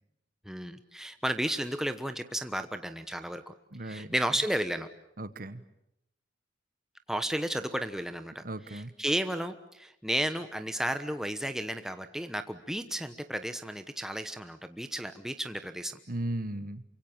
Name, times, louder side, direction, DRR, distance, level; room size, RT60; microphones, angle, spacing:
voice 1, 0.4-3.5 3.8-4.9 7.1-16.0, right 1 dB, 5° right, 8 dB, 1.1 m, -33 dB
voice 2, 3.7-4.1 5.2-5.6 8.4-8.9 16.1-16.8, right 1 dB, 45° right, 13 dB, 1.2 m, -36 dB
28.5 x 25.0 x 7.3 m, 0.80 s
head